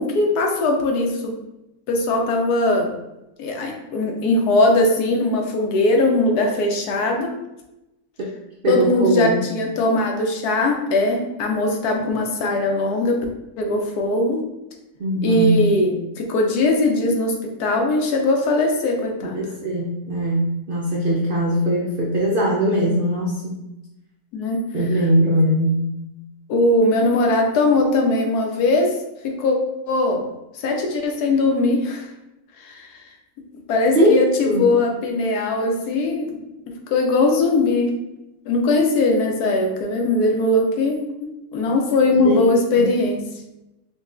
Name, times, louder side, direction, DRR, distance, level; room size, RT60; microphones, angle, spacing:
voice 1, 0.0-1.3 1.9-3.0 3.4-7.3 8.7-13.2 13.6-14.4 15.2-17.3 17.6-19.4 24.3-24.6 26.5-28.9 29.2-29.6 29.9-30.2 30.5-32.1 32.6-32.9 33.7-36.4 36.7-37.9 38.5-41.0 41.5-43.2, left 2 dB, 85° left, 2 dB, 1.2 m, -20 dB
voice 2, 8.6-9.4 15.0-15.7 19.2-23.6 24.7-25.9 33.9-34.2 34.4-34.7 42.1-42.5 42.7-42.9, equal, 75° right, -3 dB, 0.5 m, -20 dB
5.1 x 2.3 x 2.5 m, 0.93 s
omnidirectional pair, 1.6 m